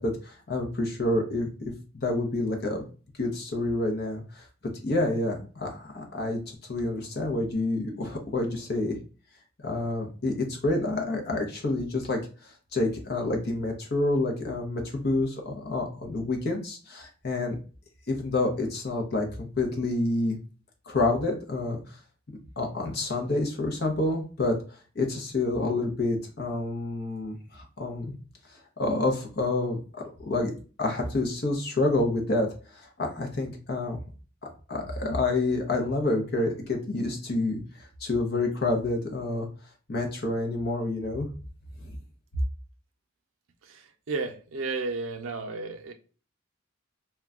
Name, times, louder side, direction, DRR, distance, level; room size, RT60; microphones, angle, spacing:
voice 1, 0.0-2.8 3.2-4.4 4.8-9.0 9.6-17.6 18.1-20.4 20.9-21.8 22.6-24.6 25.0-28.1 28.8-30.5 30.8-32.5 32.7-34.0 34.7-39.5 39.9-41.3 41.8-42.0, left 2 dB, 55° left, 3 dB, 0.7 m, -28 dB
voice 2, 43.6-45.9, right 3 dB, 90° right, 6 dB, 0.5 m, -33 dB
2.3 x 2.2 x 3.5 m, 0.37 s
head